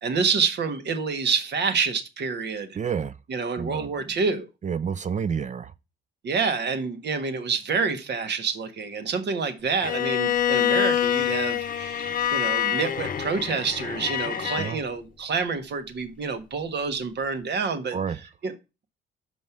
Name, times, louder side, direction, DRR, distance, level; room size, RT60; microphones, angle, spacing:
voice 1, 0.0-2.7 3.3-4.5 6.2-18.0 18.4-18.5, right 5 dB, 60° right, 1.5 m, -27 dB
voice 2, 2.8-3.1 3.6-3.9 4.6-5.7 14.6-14.8 17.9-18.2, right 7 dB, 40° right, 0.5 m, -29 dB
Bowed string instrument, 9.8-14.7, left 10 dB, 45° left, 0.7 m, -26 dB
6.4 x 5.3 x 7.1 m
cardioid pair, 90°, 20 cm